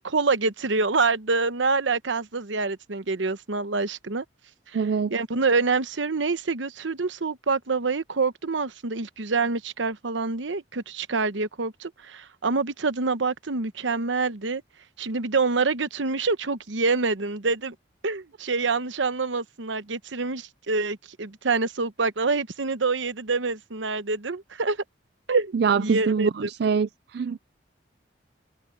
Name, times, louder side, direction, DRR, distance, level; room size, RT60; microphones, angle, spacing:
voice 1, 0.0-4.2 4.7-4.8 5.1-14.6 15.0-17.7 18.0-24.8 25.3-26.5, right 4 dB, 80° right, 1.0 m, -26 dB
voice 2, 4.7-5.1 25.5-27.4, right 6 dB, 60° right, 0.4 m, -24 dB
head